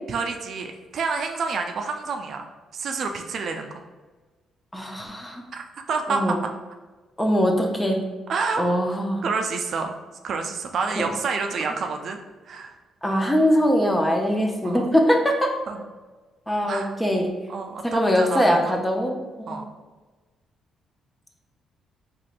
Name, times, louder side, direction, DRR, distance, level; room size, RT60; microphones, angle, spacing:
voice 1, 0.1-2.4 2.7-3.8 5.5-5.6 5.9-6.5 8.3-8.7 9.2-9.9 10.2-12.2 12.5-12.7 14.6-14.9 15.7-15.8 16.7-16.9 17.5-18.8 19.5-19.6, right 4 dB, 60° right, 4 dB, 0.4 m, -28 dB
voice 2, 4.7-5.4 6.1-6.4 7.2-8.0 8.6-9.3 11.0-11.1 13.0-15.5 16.5-17.3 17.8-19.2 19.5-19.6, equal, 10° left, 2 dB, 0.6 m, -22 dB
4.3 x 3.0 x 2.5 m, 1.3 s
cardioid pair, 90°, 0 cm